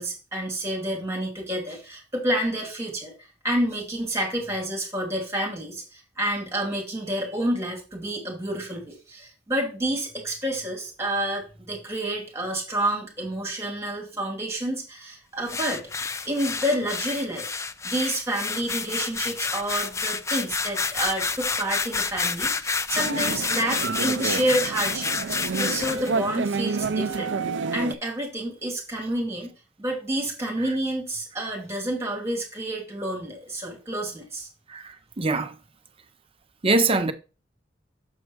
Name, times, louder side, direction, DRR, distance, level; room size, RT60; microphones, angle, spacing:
voice 1, 0.0-3.1 3.4-15.8 16.2-17.5 17.8-27.4 27.7-29.5 29.8-34.5, right 1 dB, 15° right, 2.8 m, -29 dB
sound 1, 15.5-26.1, left 4 dB, 15° left, 0.3 m, -29 dB
sound 2, 22.9-27.9, right 4 dB, 70° right, 0.5 m, -29 dB
voice 2, 35.2-35.5 36.6-37.1, right 3 dB, 30° right, 0.7 m, -22 dB
7.3 x 4.4 x 4.9 m
head